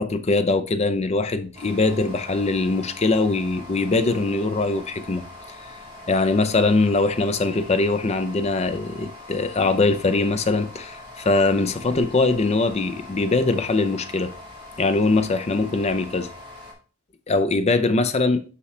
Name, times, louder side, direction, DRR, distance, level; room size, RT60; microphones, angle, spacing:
voice 1, 0.0-5.2 6.1-14.3 14.8-16.3 17.3-18.4, left 3 dB, 30° left, 0.6 m, -22 dB
sound 1, 1.5-16.7, left 2 dB, 25° right, 2.1 m, -42 dB
6.2 x 5.7 x 3.3 m
head